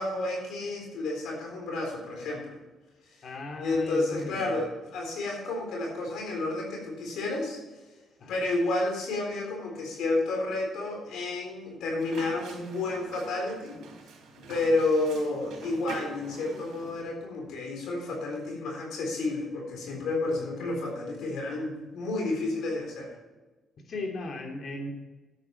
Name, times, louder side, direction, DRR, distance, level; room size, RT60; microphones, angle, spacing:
voice 1, 0.0-2.6 3.6-7.6 8.3-13.8 14.4-23.1, left 2 dB, 85° left, 0 dB, 3.9 m, -30 dB
voice 2, 3.2-4.5 8.2-8.4 14.5-14.7 23.9-24.9, left 2 dB, 55° left, 2 dB, 3.0 m, -37 dB
Rollerskating Indoors, 12.0-17.0, right 4 dB, 75° right, 3.4 m, -45 dB
12.0 x 8.8 x 4.6 m, 1.2 s
cardioid pair, 90°, 0 cm